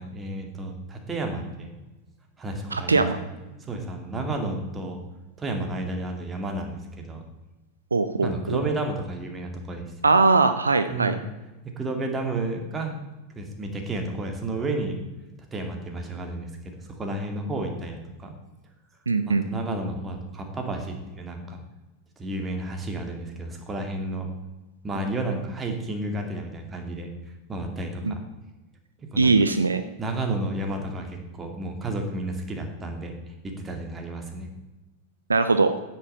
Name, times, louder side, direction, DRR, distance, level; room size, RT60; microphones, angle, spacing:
voice 1, 0.0-1.8 2.4-3.1 3.7-5.0 5.4-7.2 8.2-10.2 10.9-11.2 11.8-13.0 13.3-15.0 15.5-18.3 19.3-21.6 22.2-24.3 24.8-27.1 27.5-28.2 29.0-29.3 30.0-33.1 33.4-34.5, right 2 dB, 20° right, 3 dB, 2.4 m, -31 dB
voice 2, 2.7-3.2 7.9-8.6 10.0-11.1 19.1-19.4 28.0-28.2 29.2-29.8 35.3-35.7, right 3 dB, 80° right, 10 dB, 0.6 m, -20 dB
10.0 x 8.4 x 5.7 m, 1.1 s
figure-of-eight pair, 90°, 0 cm